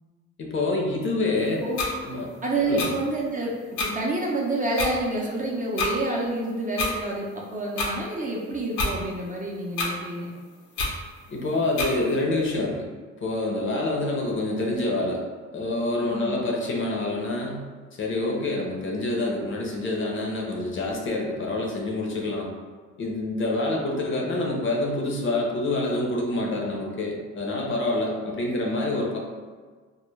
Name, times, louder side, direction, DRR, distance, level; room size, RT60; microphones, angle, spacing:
voice 1, 0.4-1.6 2.0-2.3 2.7-2.9 11.3-12.9 13.2-15.2 15.5-17.7 18.0-22.5 23.0-29.2, left 2 dB, 40° left, -1 dB, 0.6 m, -27 dB
sound 1, 1.8-1.9 2.8-2.9 3.8-3.9 4.8-4.9 5.8-5.9 6.8-6.9 7.8-7.9 8.8-8.9 9.8-9.9 10.8-10.9 11.8-11.9, left 3 dB, 80° left, 0.7 m, -26 dB
voice 2, 2.4-3.5 3.8-10.3 13.6-13.7 16.0-16.3, right 2 dB, 25° right, -2 dB, 0.4 m, -28 dB
2.2 x 2.1 x 3.1 m, 1.5 s
cardioid pair, 90°, 30 cm